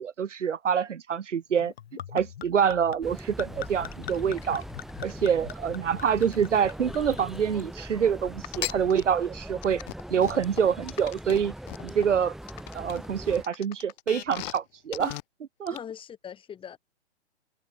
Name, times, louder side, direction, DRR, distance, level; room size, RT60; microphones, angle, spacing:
voice 1, 0.0-1.7 2.1-4.6 5.0-9.8 10.1-11.5 11.8-12.3 12.7-15.8, right 7 dB, 85° right, 0.8 m, -26 dB
Gurgling / Chink clink / Liquid, 1.6-7.7 8.4-8.8, left 10 dB, 60° left, 1.6 m, -40 dB
sound 1, 3.0-13.4, right 1 dB, ahead, 3.7 m, -41 dB
sound 2, 8.4-9.0 9.6-12.0 12.5-14.6 14.9-15.2 15.7-15.8, left 22 dB, 35° left, 3.2 m, -39 dB
voice 2, 15.7-16.8, left 8 dB, 15° left, 4.3 m, -41 dB
hypercardioid pair, 130°, 35 cm